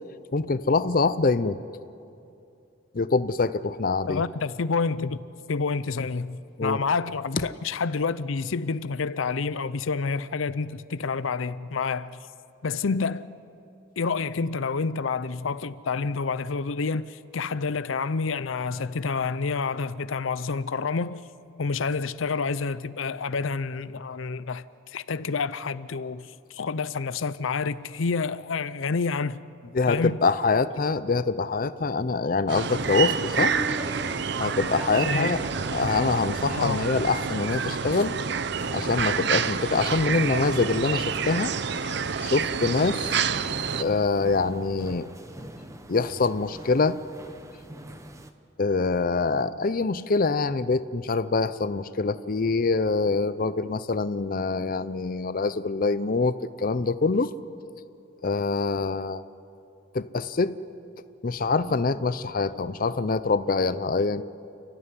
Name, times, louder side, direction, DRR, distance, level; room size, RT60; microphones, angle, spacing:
voice 1, 0.3-1.6 2.9-4.2 6.6-6.8 29.7-33.5 34.4-35.4 35.7-38.2 38.7-41.5 41.8-41.9 42.2-43.1 43.8-45.1 45.9-47.0 48.6-57.3 58.2-59.2 59.9-60.5 61.2-64.2, left 3 dB, 45° left, 0.6 m, -25 dB
voice 2, 4.0-5.2 5.5-12.2 12.6-13.3 14.0-21.2 21.6-29.4 29.9-30.2 35.1-35.3 36.6-36.8, left 4 dB, 85° left, 0.6 m, -28 dB
sound 1, 32.5-43.8, right 6 dB, 60° right, 0.7 m, -28 dB
sound 2, 32.8-48.3, right 1 dB, 15° right, 1.0 m, -42 dB
30.0 x 13.0 x 9.7 m
head